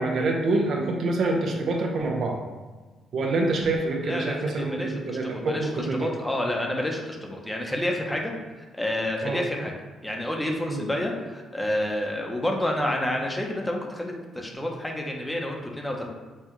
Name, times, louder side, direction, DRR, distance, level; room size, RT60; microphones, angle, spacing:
voice 1, 0.0-2.4 3.1-6.1 9.2-9.4 10.7-10.8, right 2 dB, 65° right, 1 dB, 0.6 m, -26 dB
voice 2, 4.0-8.3 8.7-9.7 10.0-16.1, left 1 dB, 10° left, 0 dB, 0.8 m, -29 dB
5.6 x 2.4 x 3.0 m, 1.3 s
cardioid pair, 90°, 0 cm